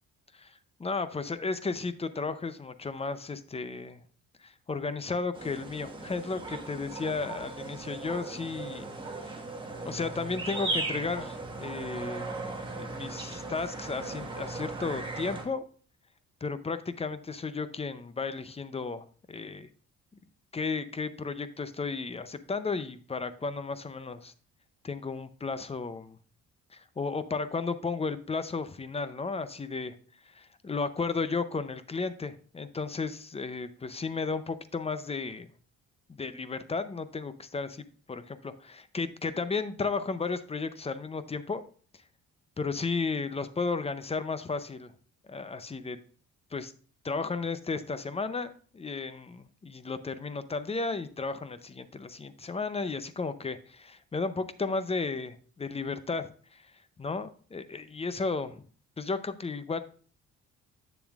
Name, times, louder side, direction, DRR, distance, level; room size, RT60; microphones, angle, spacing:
voice 1, 0.3-4.0 4.4-8.9 9.1-9.4 9.8-12.3 12.7-15.6 16.4-19.7 20.5-24.3 24.8-26.2 26.7-29.9 30.3-35.5 36.1-37.8 38.1-41.6 42.6-44.9 45.3-46.0 46.5-46.7 47.0-56.7 57.0-58.7 59.0-59.8, left 4 dB, 20° left, 12 dB, 0.5 m, -34 dB
sound 1, 5.3-15.4, right 3 dB, 15° right, 1.4 m, -37 dB
8.2 x 6.9 x 2.4 m, 0.42 s
cardioid pair, 90°, 30 cm